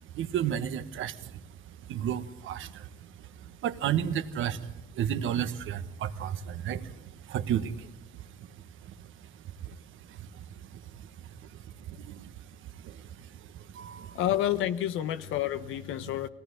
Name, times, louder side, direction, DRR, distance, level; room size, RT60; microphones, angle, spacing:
voice 1, 0.1-14.2 16.0-16.1, right 9 dB, 80° right, 10 dB, 1.4 m, -35 dB
voice 2, 14.1-16.3, left 12 dB, 90° left, 12 dB, 1.0 m, -29 dB
21.5 x 17.5 x 9.9 m, 1.0 s
cardioid pair, 90°, 20 cm